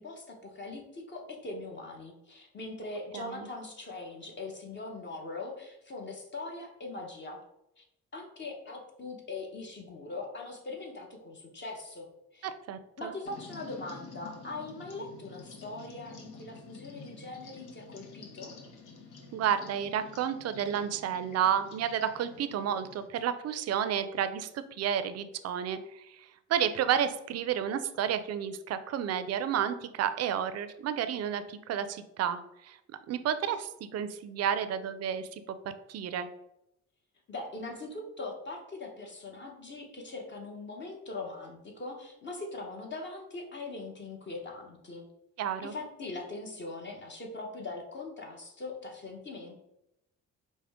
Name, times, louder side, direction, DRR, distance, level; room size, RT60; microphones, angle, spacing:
voice 1, 0.0-7.4 7.8-7.9 8.1-12.5 13.0-18.5 37.3-45.1 45.6-49.6, left 3 dB, 40° left, 1 dB, 0.9 m, -41 dB
voice 2, 3.1-3.5 12.4-13.1 19.3-32.8 33.1-35.4 35.9-36.3 45.4-45.7, right 9 dB, 55° right, 11 dB, 0.4 m, -31 dB
sound 1, 13.3-23.1, left 4 dB, 85° left, 0.8 m, -49 dB
4.9 x 2.1 x 3.5 m, 0.84 s
cardioid pair, 90°, 30 cm